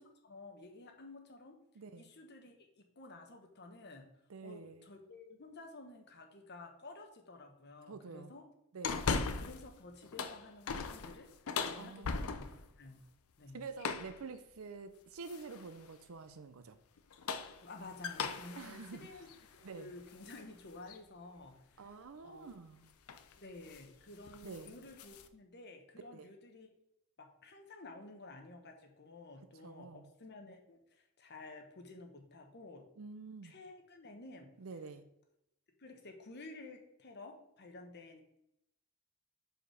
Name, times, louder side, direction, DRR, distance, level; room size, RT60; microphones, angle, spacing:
voice 1, 0.0-1.6 2.0-4.1 4.4-8.4 9.4-11.3 11.6-12.5 12.8-13.1 13.4-13.6 17.6-21.9 22.2-22.5 23.4-26.7 27.2-32.9 33.4-34.5 35.8-38.2, left 2 dB, 50° left, 3 dB, 1.2 m, -52 dB
voice 2, 1.8-2.1 4.3-4.9 7.8-8.3 8.7-9.2 11.8-12.5 13.5-16.8 18.6-19.2 19.6-19.9 21.8-22.8 24.4-24.7 26.1-26.3 29.6-30.1 33.0-33.6 34.6-35.0, right 4 dB, 75° right, 10 dB, 0.6 m, -48 dB
sound 1, 8.8-9.7 10.0-12.7 13.8-14.2 15.3-15.7 17.0-20.4 20.9-21.0 22.5-22.7 23.1-23.3 23.6-23.9 24.2-25.3, left 5 dB, 85° left, 0.6 m, -39 dB
5.1 x 4.9 x 6.2 m, 0.81 s
head